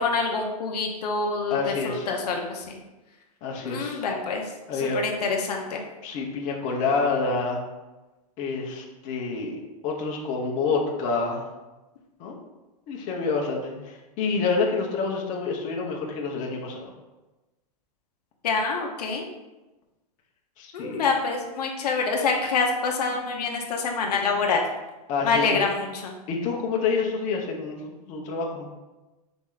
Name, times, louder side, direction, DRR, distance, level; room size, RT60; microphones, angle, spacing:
voice 1, 0.0-2.6 3.6-4.5 4.8-5.8 18.4-19.2 20.7-24.6 25.2-26.1, left 4 dB, 75° left, 2 dB, 0.7 m, -26 dB
voice 2, 1.5-2.1 3.4-4.0 4.7-5.0 6.0-7.6 8.4-11.5 12.2-12.4 12.9-16.9 20.6-21.0 25.1-25.6 26.3-28.7, left 4 dB, 40° left, -1 dB, 0.9 m, -28 dB
4.3 x 3.0 x 3.8 m, 1.1 s
hypercardioid pair, 130°, 20 cm